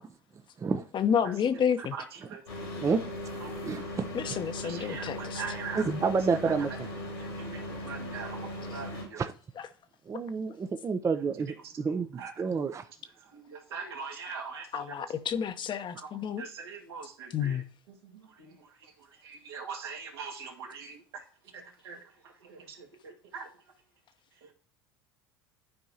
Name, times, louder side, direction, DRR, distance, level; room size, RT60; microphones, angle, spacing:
voice 1, 0.9-1.9 4.1-5.4 14.7-16.4 17.3-17.6, left 8 dB, 40° left, 0.8 m, -30 dB
voice 2, 1.8-2.8 3.4-3.5 4.6-5.8 6.4-6.5 7.2-9.2 11.6-12.3 13.2-14.9 16.0-17.6 17.9-21.2 21.5-23.5 24.4-24.5, right 5 dB, 80° right, 1.9 m, -43 dB
sound 1, 2.5-9.0, left 1 dB, 85° left, 3.4 m, -38 dB
voice 3, 3.6-4.1 5.8-6.9 9.2-9.3 10.1-12.1 12.4-12.8, right 5 dB, 25° right, 0.6 m, -29 dB
12.0 x 4.6 x 2.8 m
hypercardioid pair, 80°, 13 cm